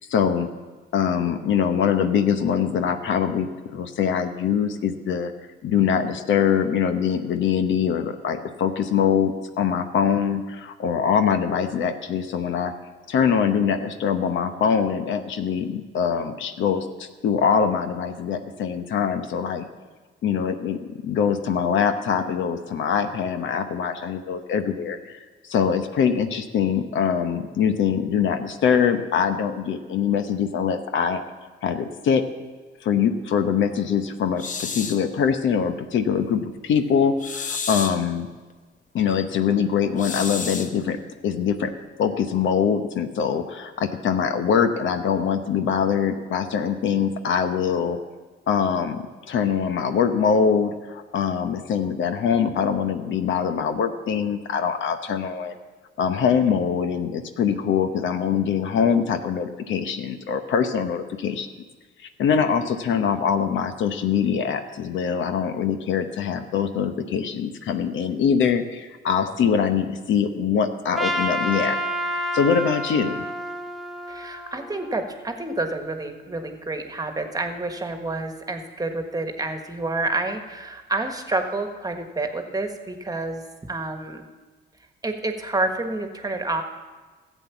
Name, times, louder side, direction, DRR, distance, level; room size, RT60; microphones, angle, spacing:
voice 1, 0.1-0.5 0.9-5.3 5.6-12.7 13.1-19.6 20.2-25.2 25.5-31.2 31.6-32.3 32.8-38.3 38.9-41.7 42.0-48.0 48.5-55.5 56.0-61.5 62.2-71.8 72.3-73.2, left 7 dB, 75° left, 8 dB, 0.9 m, -23 dB
sound 1, 34.4-35.1 37.2-38.1 40.0-40.8, left 5 dB, 40° left, 0.9 m, -31 dB
Trumpet, 70.9-75.2, equal, ahead, 1.1 m, -29 dB
voice 2, 74.1-84.2 85.0-86.6, right 2 dB, 20° right, 6 dB, 1.5 m, -29 dB
13.0 x 8.2 x 7.1 m, 1.4 s
cardioid pair, 90°, 20 cm